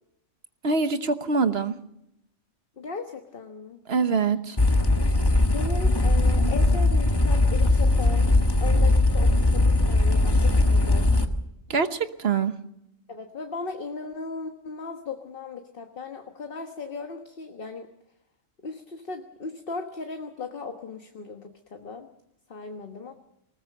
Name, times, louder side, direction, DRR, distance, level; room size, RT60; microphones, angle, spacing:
voice 1, 0.6-1.7 3.9-4.6 11.7-12.5, right 5 dB, 55° right, 10 dB, 1.3 m, -24 dB
voice 2, 2.8-3.8 5.3-8.3 8.6-11.1 13.1-17.9 18.6-22.1 22.5-23.1, left 4 dB, 45° left, 5 dB, 1.5 m, -37 dB
sound 1, 4.6-11.2, left 2 dB, 20° left, 1.3 m, -20 dB
20.5 x 19.5 x 6.6 m, 0.81 s
omnidirectional pair, 1.3 m